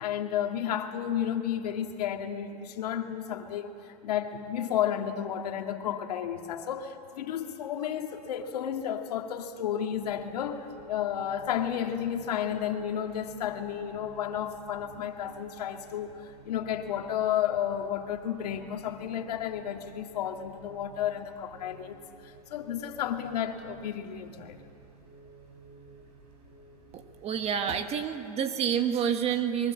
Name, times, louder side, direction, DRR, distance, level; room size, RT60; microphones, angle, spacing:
voice 1, 0.0-3.7 4.0-22.0 22.2-24.6, left 9 dB, 80° left, 4 dB, 2.0 m, -32 dB
sound 1, 9.9-27.6, right 4 dB, 70° right, 6.4 m, -53 dB
voice 2, 26.9-29.7, right 8 dB, 30° right, 8 dB, 1.6 m, -29 dB
23.5 x 22.5 x 7.5 m, 2.7 s
hypercardioid pair, 125°, 20 cm